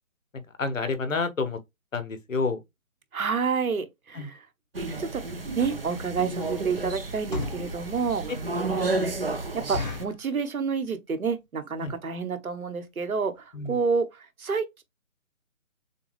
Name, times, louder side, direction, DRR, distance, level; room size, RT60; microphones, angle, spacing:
voice 1, 0.3-1.6 1.9-2.6 4.1-4.3 8.3-8.4 11.8-11.9 13.5-13.7, left 4 dB, 65° left, 1.1 m, -29 dB
voice 2, 3.1-4.4 5.0-5.2 5.5-8.2 8.7-8.9 9.5-14.8, right 5 dB, 80° right, 1.2 m, -29 dB
sound 1, 4.7-10.0, right 2 dB, 45° right, 0.7 m, -32 dB
sound 2, 7.3-7.7 8.3-8.4 8.7-8.8 9.1-9.2 9.7-10.2 10.8-11.1 11.4-11.5 11.7-12.0 12.5-12.6 12.8-13.0 13.4-13.5 13.7-13.8, left 3 dB, 30° left, 1.0 m, -34 dB
6.9 x 2.4 x 3.2 m
hypercardioid pair, 175°, 42 cm